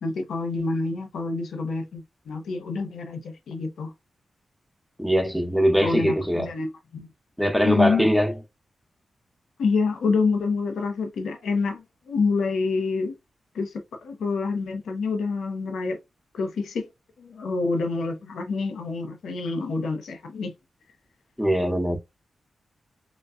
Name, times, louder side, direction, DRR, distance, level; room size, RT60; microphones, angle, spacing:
voice 1, 0.0-3.9 5.8-7.1 7.6-8.0 9.6-13.1 13.5-13.7 14.0-16.0 16.3-16.8 17.2-20.5, left 4 dB, 90° left, 0.8 m, -27 dB
voice 2, 5.0-6.5 7.4-8.3 21.4-22.0, equal, ahead, 0.9 m, -21 dB
3.9 x 2.2 x 2.4 m
cardioid pair, 55°, 0 cm